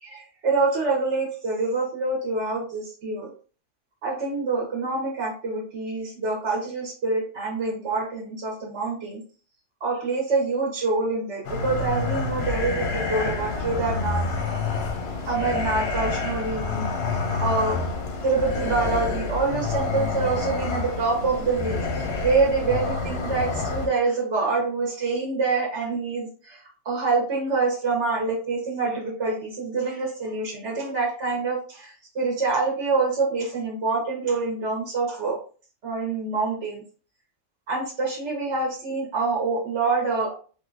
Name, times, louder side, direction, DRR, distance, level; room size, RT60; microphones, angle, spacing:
voice 1, 0.0-3.3 4.0-9.2 9.8-14.2 15.2-17.8 18.2-35.4 35.8-36.8 37.7-40.3, right 3 dB, 50° right, -2 dB, 1.3 m, -26 dB
sound 1, 11.4-23.9, left 3 dB, 55° left, 0.8 m, -28 dB
3.7 x 2.7 x 2.5 m, 0.39 s
omnidirectional pair, 1.6 m